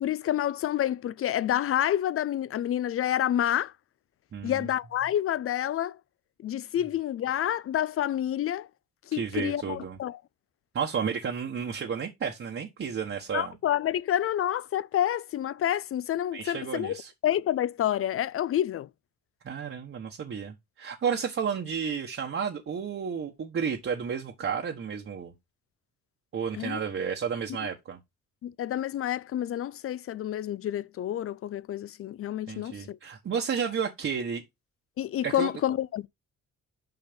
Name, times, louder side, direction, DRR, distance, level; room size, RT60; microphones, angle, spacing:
voice 1, 0.0-3.7 4.4-6.0 6.4-8.7 9.1-10.2 13.3-17.0 17.2-18.9 26.5-26.8 28.4-33.0 35.0-36.1, left 11 dB, 50° left, 0.4 m, -28 dB
voice 2, 4.3-4.7 9.1-10.0 10.7-13.5 16.3-17.1 19.4-25.3 26.3-28.0 32.5-34.4 35.2-35.5, right 7 dB, 45° right, 1.2 m, -32 dB
5.9 x 5.5 x 5.1 m
cardioid pair, 90°, 30 cm